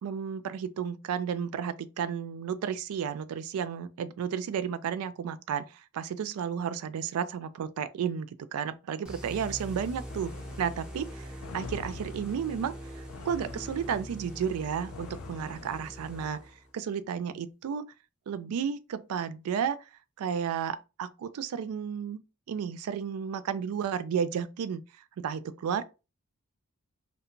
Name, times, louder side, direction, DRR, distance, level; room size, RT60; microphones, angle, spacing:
voice 1, 0.0-10.3 10.6-16.4 16.7-17.9 18.3-19.8 20.2-22.2 22.5-24.8 25.2-25.8, right 7 dB, 80° right, 0.3 m, -32 dB
sound 1, 9.0-16.7, equal, 5° right, 0.5 m, -43 dB
sound 2, 10.1-16.5, left 6 dB, 75° left, 0.3 m, -47 dB
2.7 x 2.2 x 2.5 m
head